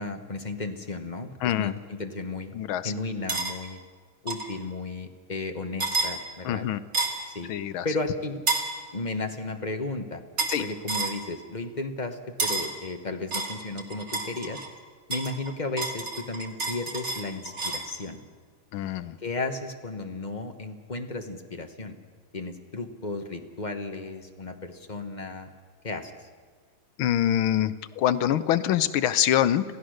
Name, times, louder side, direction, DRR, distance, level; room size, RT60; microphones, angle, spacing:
voice 1, 0.0-2.5 2.8-3.8 4.2-6.7 7.3-7.5 7.8-8.4 8.9-10.2 10.6-14.6 15.1-18.2 19.2-22.0 22.3-25.5 25.8-26.1, left 3 dB, 25° left, 6 dB, 1.0 m, -34 dB
voice 2, 1.4-1.7 2.5-2.9 6.4-6.8 7.5-7.9 10.5-10.6 18.7-19.2 27.0-29.6, left 11 dB, 75° left, 13 dB, 1.6 m, -25 dB
sound 1, 3.3-3.5 4.3-4.5 5.8-6.1 6.9-7.3 8.5-8.7 10.4-10.6 10.9-11.2 12.4-12.7 13.3-14.7 15.1-17.9, right 3 dB, 35° right, 2.0 m, -29 dB
27.0 x 16.0 x 6.5 m, 1.5 s
omnidirectional pair, 2.3 m